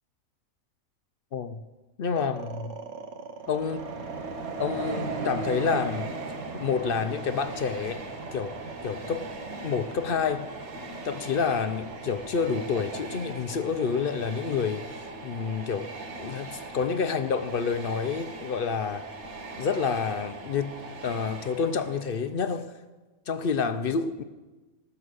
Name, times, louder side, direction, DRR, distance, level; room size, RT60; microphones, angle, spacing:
voice 1, 1.3-1.6 2.0-2.8 3.5-3.9 4.6-6.1 6.5-8.1 8.3-8.6 8.8-9.3 9.6-10.5 10.9-15.9 16.2-19.1 19.6-20.8 21.0-22.7 23.3-24.2, left 6 dB, 55° left, 10 dB, 0.6 m, -28 dB
sound 1, 2.2-14.4, right 4 dB, 60° right, 1.4 m, -44 dB
Train, 3.4-22.3, right 3 dB, 85° right, 1.6 m, -38 dB
16.5 x 6.8 x 6.3 m, 1.2 s
omnidirectional pair, 1.5 m